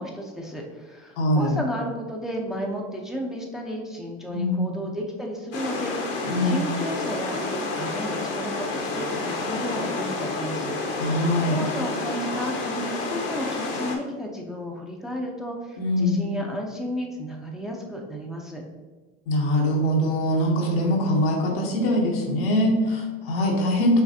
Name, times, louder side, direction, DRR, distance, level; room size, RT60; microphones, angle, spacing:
voice 1, 0.0-18.6, equal, ahead, -1 dB, 0.8 m, -33 dB
voice 2, 1.2-1.5 4.3-4.7 6.2-6.7 11.0-11.6 15.8-16.3 19.3-24.0, equal, 70° left, -1 dB, 1.2 m, -23 dB
sound 1, 5.5-14.0, left 3 dB, 55° left, 1.1 m, -29 dB
5.8 x 3.2 x 2.8 m, 1.3 s
hypercardioid pair, 80°, 30 cm